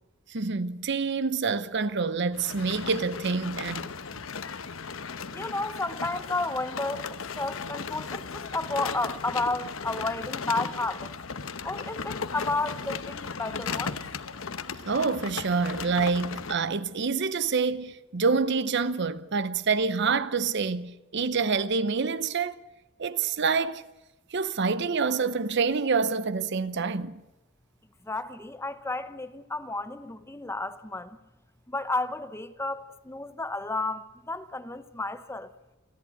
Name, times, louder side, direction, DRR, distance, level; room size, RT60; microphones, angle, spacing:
voice 1, 0.3-3.9 14.9-22.6 23.0-23.8 24.3-27.2, right 4 dB, 55° right, 0.8 m, -27 dB
sound 1, 2.3-16.6, left 5 dB, 75° left, 1.0 m, -36 dB
voice 2, 5.3-11.1 11.6-14.0 28.0-31.2 31.7-35.5, left 2 dB, 10° left, 0.7 m, -32 dB
28.5 x 11.0 x 8.4 m
head